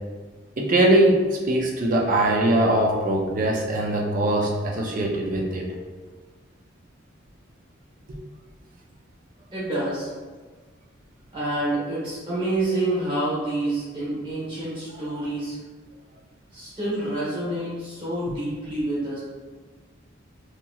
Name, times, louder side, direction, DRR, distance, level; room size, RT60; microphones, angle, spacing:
voice 1, 0.6-5.7, right 1 dB, 40° right, 0 dB, 0.4 m, -21 dB
voice 2, 9.5-10.1 11.3-15.6 16.5-19.2, right 1 dB, 25° right, -10 dB, 1.1 m, -27 dB
2.8 x 2.8 x 2.3 m, 1.4 s
head